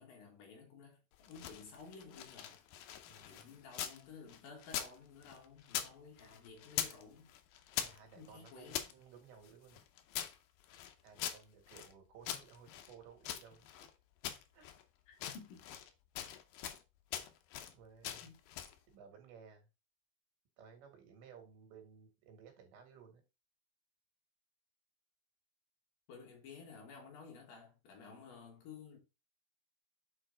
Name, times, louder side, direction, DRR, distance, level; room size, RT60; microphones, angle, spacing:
voice 1, 0.0-2.6 3.2-7.3 8.2-8.8 15.1-15.6 18.2-18.4 26.1-29.0, left 5 dB, 60° left, 3.2 m, -54 dB
sound 1, 1.1-4.0 4.3-5.9 6.2-7.0 7.3-8.9 9.4-11.9 12.2-13.9 14.2-14.8 15.1-16.8 17.1-17.7 18.0-18.8, left 10 dB, 85° left, 1.9 m, -43 dB
voice 2, 3.1-3.5 7.7-9.8 11.0-13.7 14.5-14.7 17.7-18.3 18.9-19.7 20.6-23.2, right 6 dB, 90° right, 4.1 m, -58 dB
7.9 x 4.5 x 3.8 m
omnidirectional pair, 5.0 m